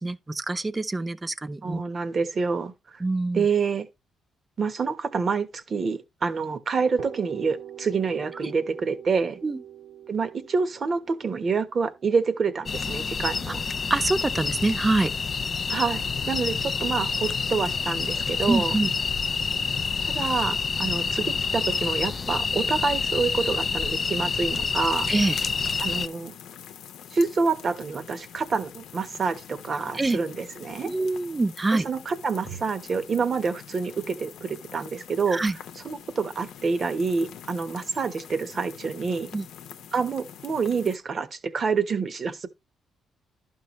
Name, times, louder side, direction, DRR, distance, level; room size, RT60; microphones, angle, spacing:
voice 1, 0.0-1.8 3.0-3.5 8.4-8.5 9.4-9.6 13.9-15.1 18.5-18.9 25.1-25.4 29.9-30.2 30.8-31.9 35.3-35.6 39.3-39.5, right 2 dB, 20° right, 0.5 m, -25 dB
voice 2, 1.6-3.0 3.3-3.9 4.6-9.4 10.1-13.6 15.7-18.7 20.1-25.1 25.8-26.3 27.1-30.9 31.7-35.4 35.8-39.3 39.9-42.5, right 5 dB, 45° right, 1.1 m, -27 dB
sound 1, 7.0-14.7, right 9 dB, 75° right, 1.7 m, -44 dB
sound 2, 12.7-26.1, left 5 dB, 40° left, 0.4 m, -27 dB
sound 3, 24.9-41.0, left 9 dB, 80° left, 0.7 m, -45 dB
11.5 x 5.6 x 3.1 m
cardioid pair, 90°, 0 cm